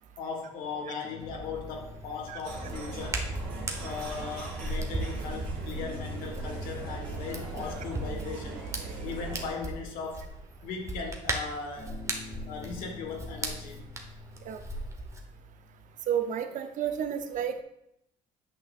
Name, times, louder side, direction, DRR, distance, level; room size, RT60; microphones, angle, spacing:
voice 1, 0.2-3.3 3.8-8.6 9.0-10.3 10.6-12.0 12.5-13.9, left 5 dB, 80° left, 1 dB, 1.4 m, -38 dB
sound 1, 1.0-4.9 5.7-10.8 11.8-16.0, left 6 dB, 30° left, 1.8 m, -50 dB
Hands, 1.2-15.2, right 2 dB, 20° right, 1.1 m, -38 dB
sound 2, 2.4-9.5, right 3 dB, 85° right, 2.0 m, -39 dB
voice 2, 16.1-17.6, right 9 dB, 65° right, 8 dB, 0.7 m, -31 dB
8.4 x 5.8 x 2.5 m, 0.78 s
supercardioid pair, 80°, 14 cm